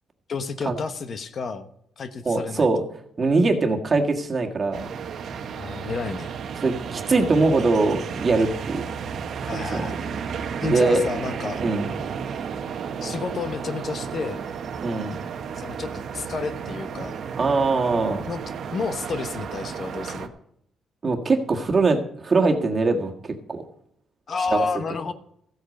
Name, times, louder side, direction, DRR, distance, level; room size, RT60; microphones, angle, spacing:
voice 1, 0.3-1.7 2.0-2.7 5.5-6.3 9.5-10.0 10.6-11.6 13.0-14.4 15.6-17.2 18.3-18.4 18.7-20.3 24.3-25.1, left 4 dB, 50° left, 10 dB, 1.1 m, -30 dB
voice 2, 2.3-2.8 3.2-4.9 6.6-8.8 9.5-9.9 10.6-11.0 11.6-11.9 14.8-15.2 17.4-18.2 21.0-23.6 24.5-24.7, right 3 dB, 35° right, 3 dB, 1.7 m, -22 dB
sound 1, 4.7-20.3, right 6 dB, 65° right, 1.1 m, -33 dB
14.5 x 8.2 x 5.3 m, 0.72 s
cardioid pair, 90°, 0 cm